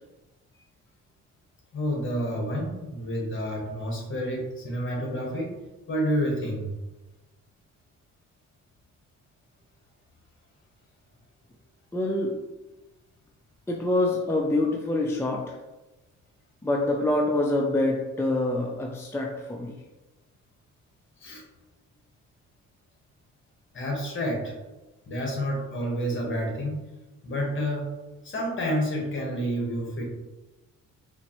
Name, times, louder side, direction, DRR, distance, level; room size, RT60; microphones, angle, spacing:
voice 1, 1.7-5.6 5.9-6.7 21.2-21.4 23.7-24.5 25.0-26.8 27.2-28.0 28.2-30.0, equal, 40° left, -1 dB, 1.2 m, -29 dB
voice 2, 11.9-12.3 13.7-15.6 16.6-19.7, left 2 dB, 10° left, 0 dB, 0.4 m, -26 dB
4.2 x 2.5 x 2.9 m, 1.1 s
cardioid pair, 90°, 30 cm